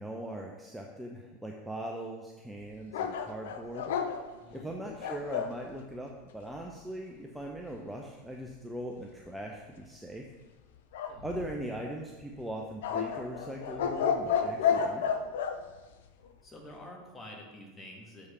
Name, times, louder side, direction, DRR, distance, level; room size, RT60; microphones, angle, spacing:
voice 1, 0.0-3.9 4.5-10.2 11.2-15.0, right 1 dB, 5° right, 0 dB, 0.6 m, -40 dB
sound 1, 2.9-5.6 10.9-11.8 12.8-15.6, left 7 dB, 60° left, 0.5 m, -31 dB
voice 2, 4.4-4.8 11.1-11.3 16.4-18.3, left 1 dB, 15° left, 0 dB, 1.5 m, -48 dB
6.8 x 4.8 x 4.3 m, 1.2 s
figure-of-eight pair, 80°, 0 cm